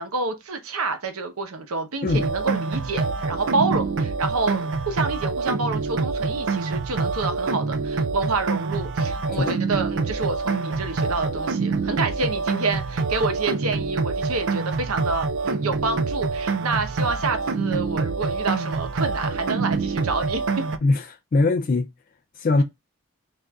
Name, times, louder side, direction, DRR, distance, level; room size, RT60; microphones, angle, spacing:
voice 1, 0.0-20.6, right 3 dB, 85° right, 0.8 m, -28 dB
sound 1, 2.1-20.8, right 4 dB, 55° right, 0.4 m, -26 dB
voice 2, 21.3-21.9 22.4-22.6, left 3 dB, 40° left, 0.3 m, -20 dB
5.9 x 2.6 x 2.3 m
head